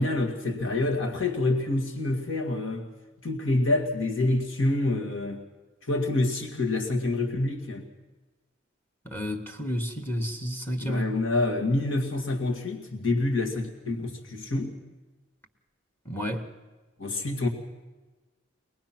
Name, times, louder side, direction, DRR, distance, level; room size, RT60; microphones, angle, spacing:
voice 1, 0.0-2.9 3.2-5.4 5.8-7.9 10.8-14.7 17.0-17.5, left 2 dB, 75° left, 2.1 m, -27 dB
voice 2, 9.0-11.2 16.1-16.5, equal, 10° left, 1.2 m, -31 dB
23.5 x 19.5 x 6.0 m
head